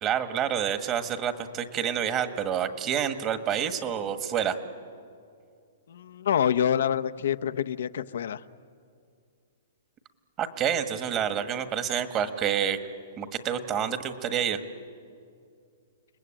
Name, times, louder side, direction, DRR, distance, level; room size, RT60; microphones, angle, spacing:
voice 1, 0.0-4.6 10.4-12.8 13.2-14.6, right 8 dB, 25° right, 9 dB, 1.6 m, -28 dB
voice 2, 5.9-8.4, left 9 dB, 75° left, 11 dB, 0.8 m, -26 dB
30.0 x 20.0 x 9.0 m, 2.3 s
hypercardioid pair, 150°, 0 cm